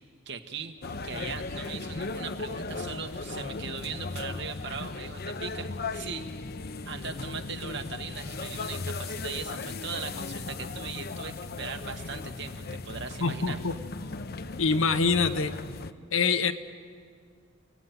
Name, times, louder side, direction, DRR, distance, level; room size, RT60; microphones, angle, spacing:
voice 1, 0.2-0.8 1.0-6.3 6.8-13.6, right 5 dB, 60° right, 6 dB, 1.7 m, -39 dB
sound 1, 0.8-15.9, left 3 dB, 50° left, 0.7 m, -37 dB
voice 2, 13.2-13.8 14.6-15.5 16.1-16.5, left 4 dB, 85° left, 9 dB, 1.2 m, -25 dB
29.5 x 18.0 x 9.4 m, 2.1 s
head